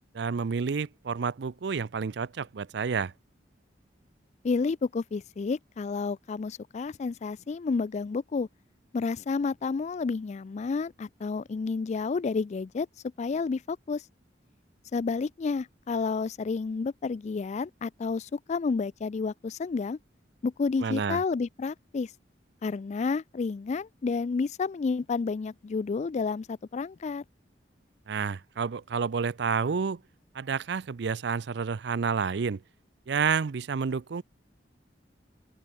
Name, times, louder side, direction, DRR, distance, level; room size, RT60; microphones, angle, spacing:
voice 1, 0.1-3.1 20.8-21.2 28.1-30.0 30.3-32.6 33.1-34.2, right 5 dB, 65° right, 0.5 m, -29 dB
voice 2, 4.4-8.5 8.9-12.9 13.2-14.0 14.9-20.0 20.4-22.1 22.6-27.2, left 4 dB, 40° left, 0.3 m, -30 dB
open air
head